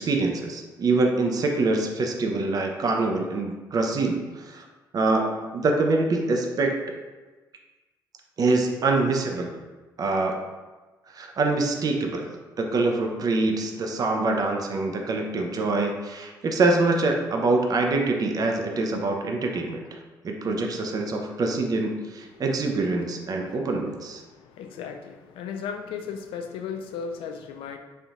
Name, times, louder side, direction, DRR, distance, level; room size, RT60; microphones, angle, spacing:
voice 1, 0.0-4.6 4.9-6.8 8.4-9.6 10.0-10.4 11.1-12.3 12.6-20.0 20.2-24.2, right 3 dB, 35° right, 2 dB, 0.5 m, -25 dB
voice 2, 23.3-23.8 24.2-27.8, left 6 dB, 55° left, 5 dB, 0.4 m, -36 dB
4.3 x 2.7 x 2.4 m, 1.3 s
figure-of-eight pair, 45°, 11 cm